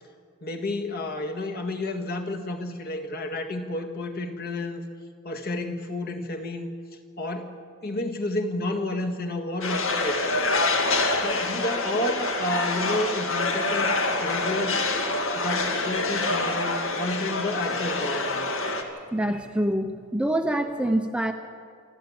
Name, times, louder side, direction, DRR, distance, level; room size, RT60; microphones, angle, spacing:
voice 1, 0.4-4.8 5.2-6.7 7.2-7.6 7.8-10.3 11.2-14.8 15.4-18.5, left 1 dB, 45° left, 3 dB, 1.9 m, -31 dB
sound 1, 9.6-18.8, left 2 dB, 60° left, 2.2 m, -26 dB
voice 2, 19.1-21.3, right 1 dB, 5° right, 5 dB, 0.7 m, -25 dB
26.5 x 12.5 x 8.8 m, 2.1 s
head